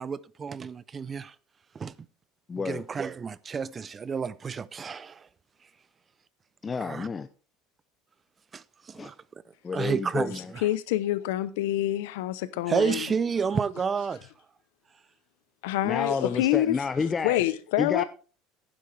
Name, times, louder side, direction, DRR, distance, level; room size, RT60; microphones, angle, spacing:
voice 1, 0.0-1.3 1.7-1.9 2.6-5.3 6.8-7.1 8.5-9.1 9.7-10.6 12.7-14.3, right 6 dB, 25° right, 0.5 m, -30 dB
voice 2, 2.5-2.8 6.6-7.3 9.0-9.1 9.6-10.5 15.8-17.4 17.8-18.0, left 5 dB, 20° left, 0.5 m, -30 dB
voice 3, 10.6-13.1 15.6-16.8 17.2-18.0, left 14 dB, 85° left, 0.8 m, -26 dB
11.5 x 10.0 x 3.3 m
supercardioid pair, 120°, 0 cm